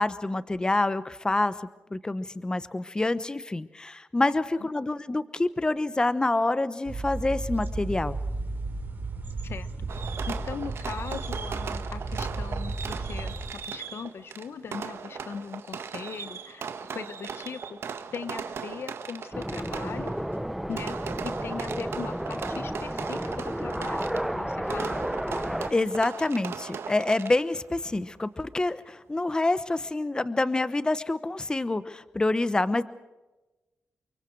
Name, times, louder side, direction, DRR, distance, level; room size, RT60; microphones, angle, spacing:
voice 1, 0.0-1.5 1.9-8.2 25.7-32.8, left 2 dB, 20° left, 14 dB, 1.0 m, -27 dB
sound 1, 6.9-13.5, right 3 dB, 50° right, 3.8 m, -34 dB
Fireworks, 9.9-27.7, right 6 dB, 75° right, 1.6 m, -38 dB
voice 2, 10.3-20.1 20.7-21.0 21.2-25.0, left 6 dB, 70° left, 13 dB, 1.1 m, -39 dB
sound 2, 19.3-25.7, equal, 5° right, 0.7 m, -32 dB
29.5 x 24.0 x 4.7 m, 1.1 s
wide cardioid pair, 105°, 4 cm